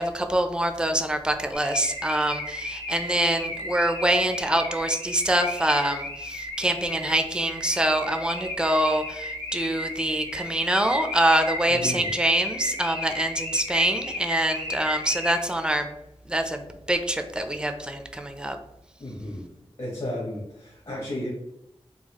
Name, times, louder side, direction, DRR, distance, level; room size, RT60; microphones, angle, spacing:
voice 1, 0.0-15.9 16.3-16.6 16.9-18.6, right 1 dB, 10° right, 6 dB, 0.4 m, -25 dB
Car / Alarm, 1.5-15.7, left 1 dB, 90° left, 1.0 m, -34 dB
voice 2, 11.7-12.1 19.0-19.5 19.8-21.3, left 1 dB, 55° left, -4 dB, 1.0 m, -33 dB
3.9 x 2.3 x 2.9 m, 0.84 s
cardioid pair, 40°, 11 cm